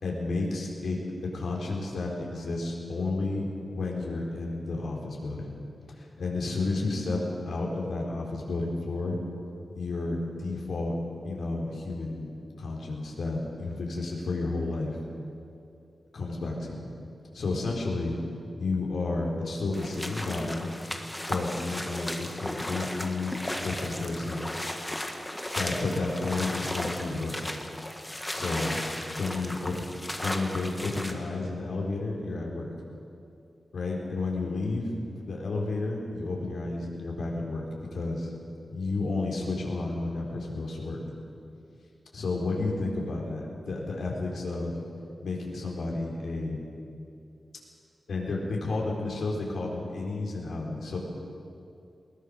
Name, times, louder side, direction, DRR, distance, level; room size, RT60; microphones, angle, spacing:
voice 1, 0.0-5.5 5.9-7.2 7.5-9.2 9.7-10.9 11.2-12.3 12.6-15.0 16.1-16.9 17.3-18.2 18.6-20.7 21.2-24.5 25.5-27.4 28.3-28.8 29.2-29.9 30.2-32.7 33.7-34.9 35.2-37.7 37.9-38.3 38.7-41.0 42.1-44.8 45.2-46.6 48.1-51.0, left 3 dB, 85° left, -2 dB, 4.3 m, -31 dB
sound 1, 19.7-31.1, left 1 dB, 10° left, 1.4 m, -35 dB
20.5 x 20.5 x 6.6 m, 2.6 s
wide cardioid pair, 170°, 0 cm